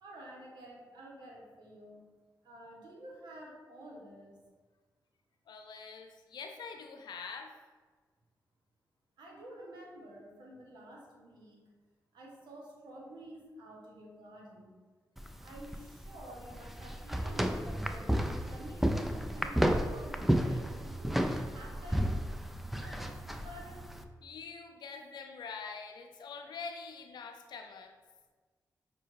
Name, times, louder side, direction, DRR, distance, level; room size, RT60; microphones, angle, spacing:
voice 1, 0.0-2.1 2.4-4.4 9.2-11.7 12.1-14.8 15.4-21.2 21.5-22.2 22.8-24.0, right 1 dB, 85° right, -2 dB, 0.9 m, -50 dB
voice 2, 5.5-7.5 24.2-27.9, left 5 dB, 75° left, 4 dB, 0.4 m, -45 dB
sound 1, 15.2-24.0, equal, ahead, 0.3 m, -32 dB
5.5 x 2.2 x 3.2 m, 1.4 s
supercardioid pair, 45°, 7 cm